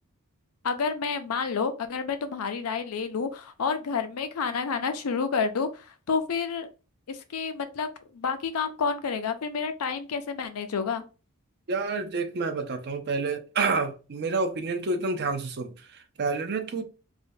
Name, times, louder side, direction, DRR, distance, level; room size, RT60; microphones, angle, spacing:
voice 1, 0.6-6.7 7.1-11.0 16.8-16.9, left 5 dB, 75° left, 0.5 m, -29 dB
voice 2, 11.7-16.8, right 4 dB, 50° right, 0.5 m, -29 dB
3.3 x 2.1 x 2.6 m
head